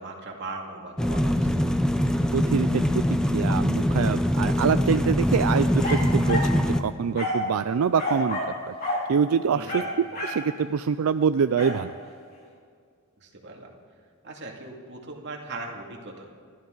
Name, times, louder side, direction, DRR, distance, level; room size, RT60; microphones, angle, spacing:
voice 1, 0.0-1.4 9.5-9.8 13.2-13.7 14.2-16.3, right 2 dB, 55° right, 0 dB, 2.4 m, -39 dB
sound 1, 1.0-6.8, equal, 5° left, 0.6 m, -23 dB
voice 2, 2.3-3.0 3.3-8.4 8.7-8.8 9.1-12.0, right 6 dB, 85° right, 11 dB, 0.4 m, -25 dB
sound 2, 5.8-6.6 7.2-7.5 8.0-8.6 8.8-9.1 9.7-10.5 11.6-11.8, left 1 dB, 45° left, 4.5 m, -29 dB
29.0 x 12.0 x 4.0 m, 2.1 s
head